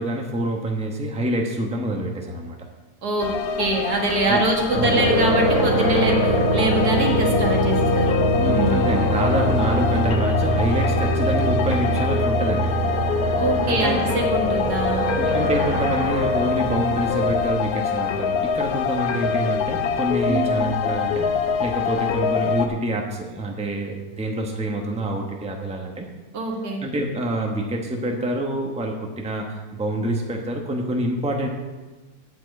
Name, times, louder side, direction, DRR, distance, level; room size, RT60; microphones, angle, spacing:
voice 1, 0.0-2.5 4.3-4.4 4.7-5.0 8.3-12.7 13.7-14.0 15.1-21.2 21.6-26.1 26.8-31.5, right 1 dB, 5° right, 1 dB, 1.0 m, -26 dB
sound 1, 3.2-22.7, left 7 dB, 75° left, 1.2 m, -25 dB
voice 2, 3.6-8.1 8.4-8.9 13.4-15.1 20.3-20.6 26.3-26.8, right 2 dB, 80° right, 0 dB, 2.2 m, -24 dB
sound 2, 4.7-17.5, right 1 dB, 30° right, 2.5 m, -23 dB
8.8 x 5.9 x 8.2 m, 1.2 s
omnidirectional pair, 1.7 m